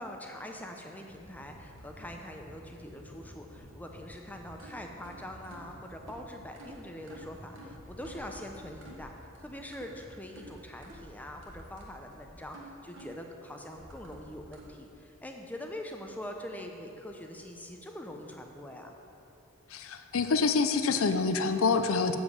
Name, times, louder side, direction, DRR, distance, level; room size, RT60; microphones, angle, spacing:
voice 1, 0.0-18.9, left 1 dB, 5° left, 3 dB, 0.6 m, -43 dB
sound 1, 1.0-14.7, right 1 dB, 60° right, 1.4 m, -50 dB
voice 2, 19.7-22.2, left 4 dB, 75° left, 8 dB, 0.6 m, -26 dB
7.4 x 6.2 x 7.3 m, 2.7 s
head